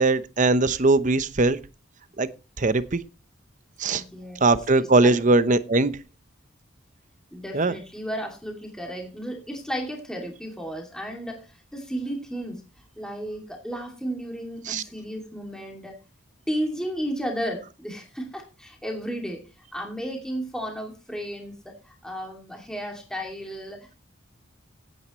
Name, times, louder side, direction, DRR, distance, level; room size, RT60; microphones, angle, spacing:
voice 1, 0.0-1.6 2.2-2.3 2.6-3.0 3.8-4.0 4.4-5.9 7.5-7.7 14.7-14.8, right 2 dB, 40° right, 0.8 m, -20 dB
voice 2, 3.9-5.2 7.3-12.6 13.0-16.0 16.5-19.4 19.7-23.9, equal, 5° left, 2.5 m, -33 dB
16.5 x 9.4 x 3.1 m
head